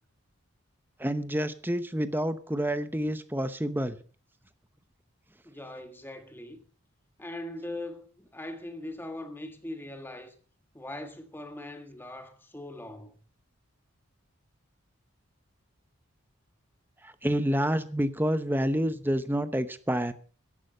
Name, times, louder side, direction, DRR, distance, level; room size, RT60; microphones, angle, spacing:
voice 1, 1.0-4.0 17.0-20.1, equal, 10° right, 0.8 m, -28 dB
voice 2, 5.4-6.6 7.2-10.3 10.7-13.1, left 1 dB, 10° left, 1.6 m, -41 dB
14.5 x 11.0 x 5.5 m
head